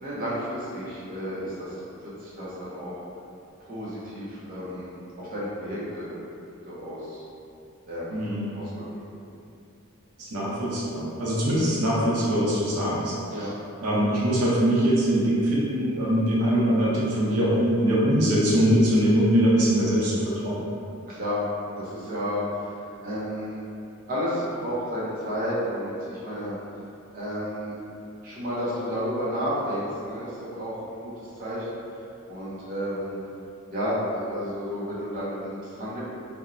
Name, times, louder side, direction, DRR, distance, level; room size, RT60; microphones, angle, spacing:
voice 1, 0.0-2.9 3.6-6.1 6.6-7.2 7.9-9.0 11.5-11.7 13.3-13.5 21.1-21.5 21.8-22.4 22.7-23.6 24.1-26.6 27.1-27.8 28.2-31.7 32.3-33.2 33.7-36.0, equal, 40° right, -9 dB, 0.5 m, -32 dB
voice 2, 8.1-8.4 10.2-13.1 13.4-13.5 13.8-20.6, equal, 85° right, -6 dB, 0.6 m, -22 dB
2.9 x 2.0 x 2.4 m, 2.6 s
head